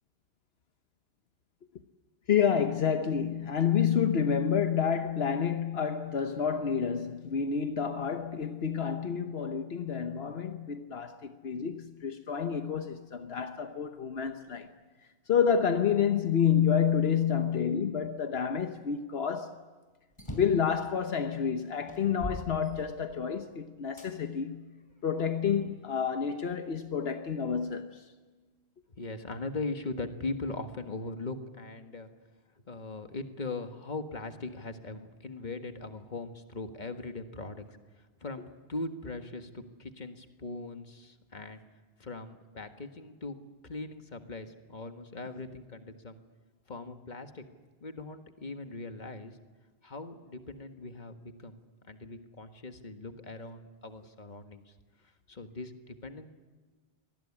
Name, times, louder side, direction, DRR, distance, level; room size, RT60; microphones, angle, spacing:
voice 1, 2.3-14.7 15.3-19.6 20.3-24.7 25.0-28.0, left 7 dB, 75° left, 1.2 m, -29 dB
sound 1, 20.1-20.7 21.3-21.4 21.9-23.3 24.0-24.1 24.8-25.9, equal, 25° left, 4.3 m, -42 dB
voice 2, 28.9-32.1 32.7-37.8 38.2-41.6 42.0-43.4 43.6-46.2 46.7-47.4 47.8-49.4 49.8-51.6 51.9-54.7 55.3-56.3, left 3 dB, 45° left, 1.7 m, -40 dB
25.0 x 19.5 x 9.9 m
omnidirectional pair, 1.1 m